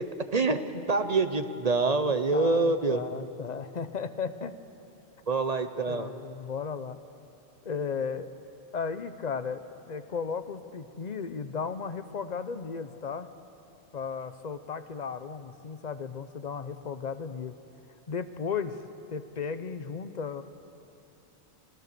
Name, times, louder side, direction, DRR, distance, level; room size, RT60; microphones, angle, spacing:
voice 1, 0.9-3.0 5.3-6.1, right 3 dB, 40° right, 9 dB, 0.9 m, -25 dB
voice 2, 2.1-4.6 5.9-7.0 7.6-8.3 8.7-13.3 13.9-17.5 18.1-18.8 19.1-20.4, left 6 dB, 45° left, 11 dB, 0.8 m, -35 dB
26.5 x 17.5 x 6.8 m, 2.8 s
omnidirectional pair, 1.1 m